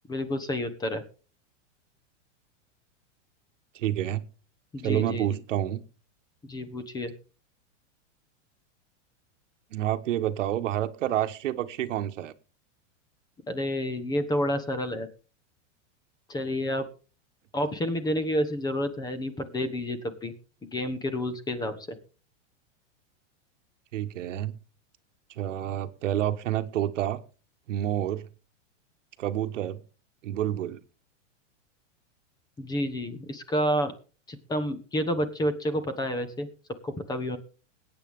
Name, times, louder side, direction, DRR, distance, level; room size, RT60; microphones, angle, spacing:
voice 1, 0.1-1.0 4.7-5.4 6.5-7.1 13.5-15.1 16.3-16.8 17.5-20.3 20.6-22.0 32.6-33.9 34.3-36.5 36.8-37.4, equal, 10° left, 11 dB, 1.0 m, -29 dB
voice 2, 3.7-4.2 4.8-5.8 9.7-12.3 23.9-24.6 25.4-27.2 27.7-28.3 29.2-29.8 30.2-30.8, right 12 dB, 80° right, 10 dB, 1.3 m, -28 dB
21.5 x 9.0 x 3.6 m, 0.36 s
supercardioid pair, 160°, 37 cm